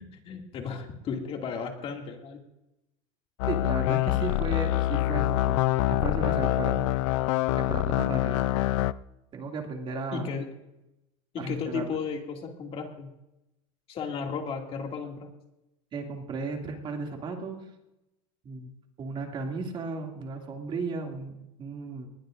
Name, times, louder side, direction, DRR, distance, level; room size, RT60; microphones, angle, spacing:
voice 1, 0.0-2.4 10.1-10.5 11.3-13.1 13.9-15.3, left 6 dB, 35° left, 2 dB, 2.4 m, -34 dB
sound 1, 3.4-8.9, left 15 dB, 75° left, 0.5 m, -25 dB
voice 2, 3.5-6.9 7.6-8.4 9.3-10.3 11.4-12.0 15.9-17.6 18.4-22.1, right 3 dB, 30° right, 2 dB, 2.5 m, -35 dB
20.0 x 20.0 x 2.6 m, 0.91 s
supercardioid pair, 135°, 16 cm